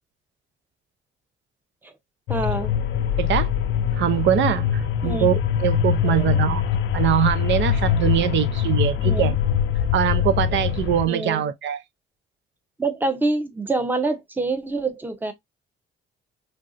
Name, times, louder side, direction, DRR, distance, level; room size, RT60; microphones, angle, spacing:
sound 1, 2.3-11.1, left 9 dB, 75° left, 0.4 m, -23 dB
voice 1, 2.3-2.7 5.0-5.3 6.0-6.4 9.0-9.3 11.1-11.4 12.8-15.3, right 3 dB, 10° right, 0.6 m, -26 dB
voice 2, 3.2-3.5 3.9-6.6 6.9-9.4 9.9-11.8, right 10 dB, 65° right, 0.5 m, -23 dB
3.2 x 2.6 x 2.4 m
cardioid pair, 90°, 20 cm